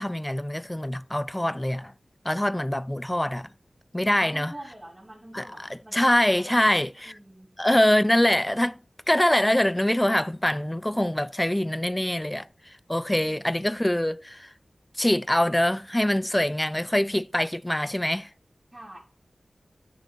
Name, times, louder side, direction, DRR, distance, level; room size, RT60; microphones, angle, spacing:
voice 1, 0.0-1.9 2.2-3.5 3.9-4.5 5.3-7.2 7.6-8.8 9.1-14.5 14.9-18.3, left 1 dB, 10° left, 0.3 m, -24 dB
voice 2, 4.1-7.5 18.7-19.0, right 1 dB, 25° right, 4.2 m, -46 dB
9.2 x 6.8 x 4.2 m
wide cardioid pair, 65°, 0 cm